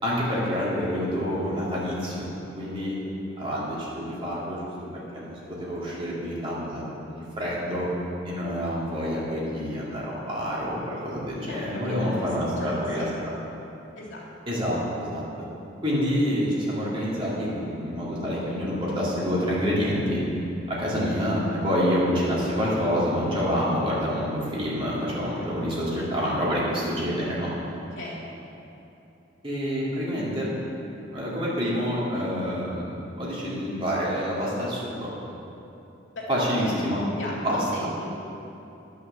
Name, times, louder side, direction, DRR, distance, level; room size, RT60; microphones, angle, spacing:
voice 1, 0.0-2.9 3.4-6.8 7.1-7.9 8.2-13.1 14.5-15.2 15.8-20.2 20.7-27.5 29.4-30.5 31.1-35.1 36.3-37.0 37.4-37.7, equal, 30° right, -7 dB, 2.5 m, -27 dB
voice 2, 11.5-12.1 12.4-13.3 14.0-14.6 27.9-28.3 36.1-36.3 36.6-38.1, left 1 dB, 80° left, -5 dB, 2.5 m, -37 dB
11.0 x 6.2 x 6.8 m, 2.8 s
head